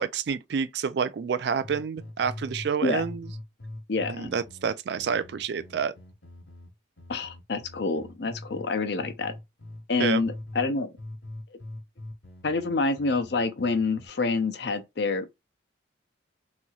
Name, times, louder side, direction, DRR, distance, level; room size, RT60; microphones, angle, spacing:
voice 1, 0.0-3.3 4.1-5.9 10.0-10.2, right 6 dB, 60° right, 0.3 m, -28 dB
sound 1, 1.6-2.7 3.0-8.7 9.0-10.7 11.0-14.1, left 1 dB, 75° left, 1.2 m, -42 dB
voice 2, 3.9-4.3 7.1-9.3 9.9-10.9 12.4-15.4, left 3 dB, 55° left, 0.5 m, -27 dB
3.9 x 3.0 x 2.3 m
head